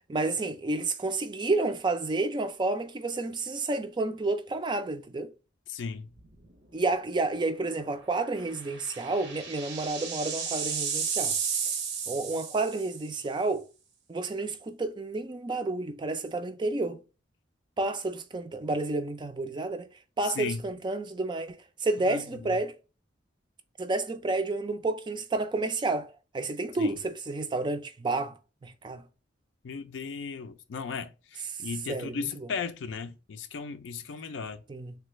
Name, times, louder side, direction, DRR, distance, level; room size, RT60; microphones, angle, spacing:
voice 1, 0.0-5.3 6.7-11.4 12.1-13.6 14.1-17.0 17.8-19.9 20.2-22.7 23.8-28.4 28.6-29.0 31.9-32.2 34.7-35.0, right 2 dB, 25° right, 0.4 m, -30 dB
voice 2, 5.7-6.1 20.2-20.6 22.1-22.6 26.8-26.9 29.6-34.6, left 5 dB, 80° left, 0.4 m, -36 dB
sound 1, 6.2-6.5 6.9-7.0 8.4-13.1, right 6 dB, 85° right, 0.8 m, -33 dB
3.2 x 2.3 x 3.0 m
head